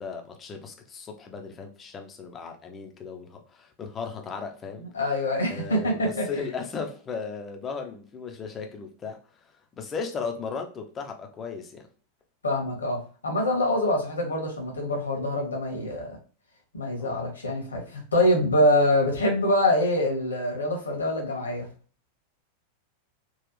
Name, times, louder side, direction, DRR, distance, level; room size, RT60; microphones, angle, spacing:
voice 1, 0.0-4.9 5.5-9.2 9.7-11.8 17.0-17.2, left 5 dB, 25° left, 4 dB, 0.7 m, -36 dB
voice 2, 4.8-6.5 12.4-16.2 16.7-21.7, left 1 dB, 75° left, 1 dB, 1.2 m, -25 dB
3.9 x 2.4 x 3.1 m, 0.39 s
figure-of-eight pair, 90°, 0 cm